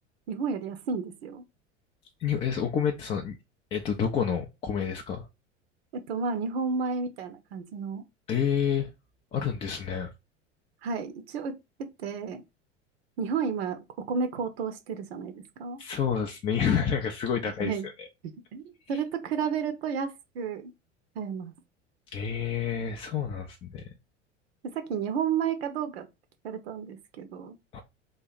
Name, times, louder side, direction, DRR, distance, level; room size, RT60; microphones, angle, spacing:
voice 1, 0.3-1.4 5.9-8.0 10.8-12.4 13.2-13.8 14.1-15.8 17.6-17.9 18.2-20.7 21.2-21.5 24.6-26.1 26.4-27.6, right 6 dB, 60° right, 0.6 m, -32 dB
voice 2, 2.2-3.4 3.7-5.2 8.3-8.9 9.3-10.1 15.8-17.7 18.0-18.1 22.1-23.9 27.7-27.8, left 7 dB, 15° left, 0.3 m, -28 dB
2.8 x 2.4 x 3.9 m
figure-of-eight pair, 80°, 36 cm